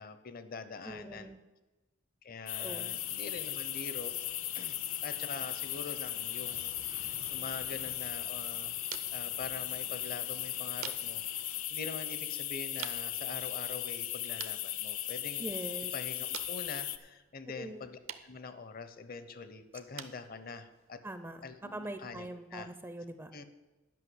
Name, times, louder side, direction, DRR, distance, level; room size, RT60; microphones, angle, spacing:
voice 1, 0.0-1.3 2.2-4.1 4.5-8.8 9.1-15.5 15.9-21.0 21.4-22.7 23.3-23.4, left 4 dB, 45° left, 11 dB, 0.8 m, -44 dB
voice 2, 0.9-1.4 2.6-2.9 15.4-15.9 17.5-17.9 21.0-21.4 21.7-23.3, right 1 dB, 10° right, 10 dB, 0.5 m, -42 dB
sound 1, 2.5-17.0, left 13 dB, 85° left, 0.6 m, -37 dB
Waves surf, 2.9-11.6, left 2 dB, 70° left, 1.9 m, -56 dB
sound 2, 7.7-22.7, right 10 dB, 70° right, 0.7 m, -51 dB
11.0 x 5.7 x 7.9 m, 1.1 s
head